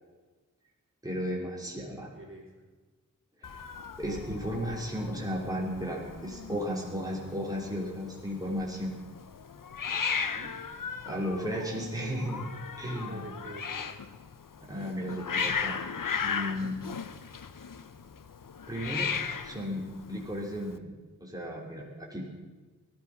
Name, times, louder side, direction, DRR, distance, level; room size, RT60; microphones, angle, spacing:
voice 1, 1.0-2.1 3.4-3.6 4.0-9.0 11.1-12.5 12.8-13.3 14.6-15.8 16.2-16.8 18.7-19.1 19.4-21.0 21.2-22.3, equal, 10° right, -3 dB, 3.4 m, -34 dB
voice 2, 2.1-2.6 10.2-10.5 12.9-13.9, right 1 dB, 40° right, -2 dB, 3.3 m, -47 dB
Hiss, 3.4-20.8, left 6 dB, 75° left, 0.8 m, -37 dB
16.5 x 12.5 x 6.0 m, 1.3 s
wide cardioid pair, 55°, 33 cm